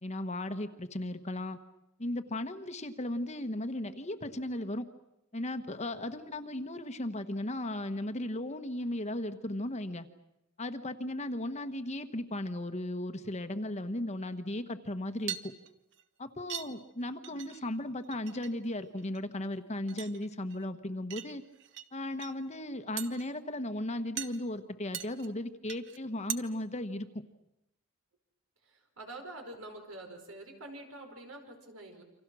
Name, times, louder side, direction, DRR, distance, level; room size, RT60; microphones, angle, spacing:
voice 1, 0.0-1.6 2.0-4.9 5.3-10.1 10.6-15.5 16.2-21.4 21.9-27.1, left 1 dB, 30° left, 9 dB, 1.2 m, -36 dB
sound 1, 15.2-16.0 16.5-16.7 17.0-17.8 18.0-18.5 18.8-19.4 19.9-20.6 21.1-21.9 22.1-22.3 23.0-23.3 24.2-24.4 24.9-25.3 25.7-26.0 26.3-26.4, right 10 dB, 55° right, 1.1 m, -40 dB
voice 2, 28.6-32.0, right 2 dB, 75° right, 4 dB, 5.0 m, -46 dB
29.0 x 25.5 x 6.3 m, 0.88 s
head